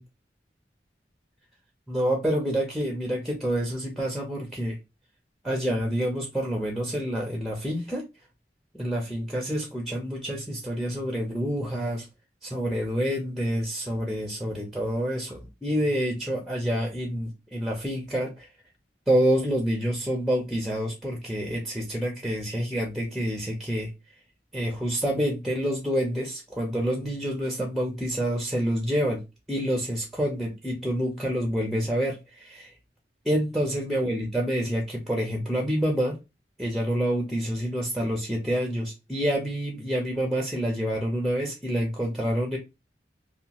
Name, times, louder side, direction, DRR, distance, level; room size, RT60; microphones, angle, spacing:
voice 1, 1.9-4.8 5.4-8.0 8.8-12.1 12.4-18.5 19.1-23.9 24.5-29.2 29.5-32.7 33.3-36.1 36.6-42.6, equal, ahead, 1 dB, 0.5 m, -27 dB
2.8 x 2.1 x 2.8 m, 0.25 s
head